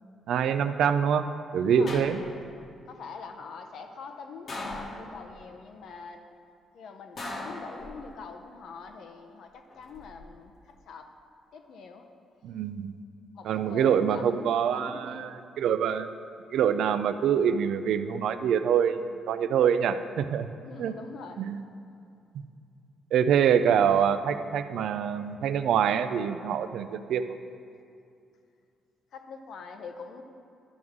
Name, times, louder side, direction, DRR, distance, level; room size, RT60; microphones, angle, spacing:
voice 1, 0.3-1.3 1.5-2.2 12.4-12.9 13.4-15.3 15.6-16.1 16.5-20.5 20.8-20.9 21.4-21.6 23.1-27.2, right 8 dB, 75° right, 10 dB, 0.4 m, -25 dB
voice 2, 1.6-2.0 2.9-6.4 6.7-11.1 11.5-12.1 13.3-15.3 20.6-21.5 29.1-30.2, left 5 dB, 70° left, 5 dB, 0.7 m, -44 dB
sound 1, 1.9-2.6 4.5-5.4 7.2-8.3 9.7-10.2, left 2 dB, 50° left, 1.2 m, -39 dB
12.0 x 6.1 x 3.7 m, 2.5 s
cardioid pair, 90°, 0 cm